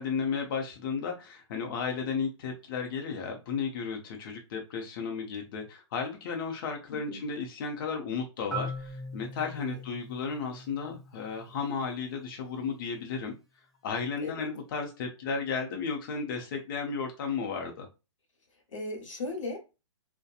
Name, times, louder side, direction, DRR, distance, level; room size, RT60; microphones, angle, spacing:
voice 1, 0.0-13.3 13.8-17.9, left 5 dB, 45° left, 0.6 m, -34 dB
voice 2, 6.9-7.2 9.4-9.8 14.2-14.5 18.7-19.8, left 2 dB, 90° left, 1.0 m, -38 dB
Marimba xylophone, 8.5-12.4, equal, ahead, 0.4 m, -41 dB
2.8 x 2.1 x 2.3 m
hypercardioid pair, 145°, 16 cm